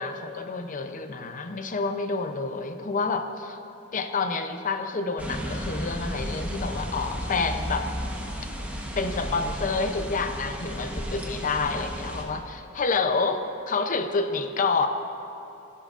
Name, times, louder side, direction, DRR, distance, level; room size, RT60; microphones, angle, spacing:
voice 1, 0.0-3.6 3.9-7.9 9.0-14.9, left 4 dB, 40° left, 7 dB, 0.6 m, -28 dB
sound 1, 5.2-12.2, equal, 5° right, 1.1 m, -33 dB
17.0 x 10.5 x 2.5 m, 2.9 s
head